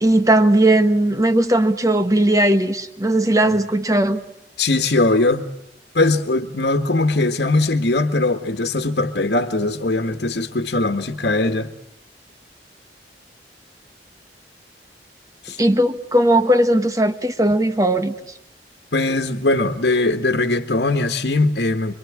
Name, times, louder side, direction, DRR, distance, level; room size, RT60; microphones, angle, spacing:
voice 1, 0.0-4.2 15.6-18.1, right 1 dB, 20° right, 1.4 m, -17 dB
voice 2, 4.6-5.4 5.9-11.7 15.4-15.6 18.9-21.9, left 2 dB, 65° left, 1.6 m, -20 dB
26.0 x 24.5 x 8.7 m
head